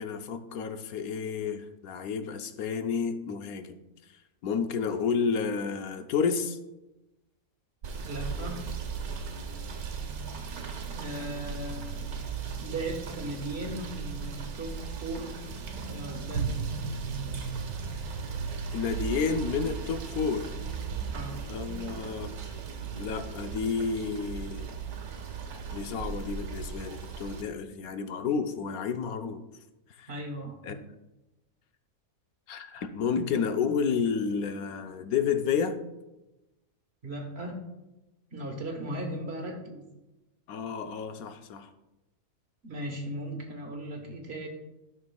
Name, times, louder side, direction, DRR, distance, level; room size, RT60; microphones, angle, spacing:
voice 1, 0.0-3.8 4.4-6.6 18.7-20.5 21.5-22.3 23.0-24.7 25.7-29.4 30.0-30.1 30.6-30.8 32.5-35.8 40.5-41.7, left 6 dB, 80° left, 8 dB, 1.1 m, -30 dB
Rain / Motor vehicle (road), 7.8-27.4, right 5 dB, 85° right, 1.4 m, -36 dB
voice 2, 8.0-8.7 10.9-12.1 12.6-15.4 15.9-16.6 21.1-21.4 30.1-30.6 37.0-37.6 38.3-39.8 42.6-44.5, right 1 dB, 50° right, 3 dB, 1.3 m, -37 dB
12.5 x 6.2 x 2.3 m, 1.0 s
omnidirectional pair, 1.5 m